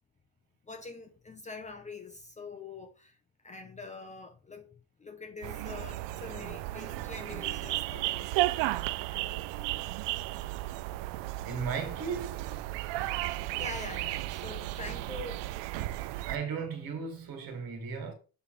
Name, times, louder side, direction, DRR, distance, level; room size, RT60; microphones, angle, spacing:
voice 1, 0.6-3.2 3.4-8.3 9.1-9.4 12.7-15.5, left 4 dB, 15° left, 0.7 m, -45 dB
sound 1, 5.4-16.4, right 17 dB, 80° right, 0.6 m, -34 dB
voice 2, 11.4-12.6 16.3-18.1, right 5 dB, 55° right, 2.0 m, -36 dB
7.1 x 3.5 x 4.7 m
cardioid pair, 155°, 42 cm